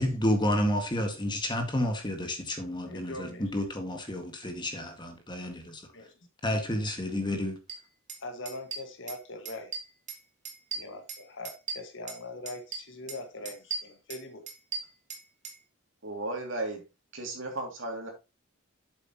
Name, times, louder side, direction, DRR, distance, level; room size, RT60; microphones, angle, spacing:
voice 1, 0.0-5.8 6.4-7.6, left 1 dB, 25° left, 1.8 m, -30 dB
voice 2, 2.8-3.4 5.9-6.1 8.2-9.7 10.7-14.5, left 2 dB, 65° left, 1.8 m, -41 dB
sound 1, 7.7-7.8 8.1-8.2 8.4-9.2 9.4-10.2 10.4-12.2 12.5-13.2 13.4-15.6, right 5 dB, 35° right, 2.2 m, -38 dB
voice 3, 16.0-16.8 17.1-18.1, right 2 dB, 65° right, 2.7 m, -35 dB
8.2 x 7.7 x 3.0 m
head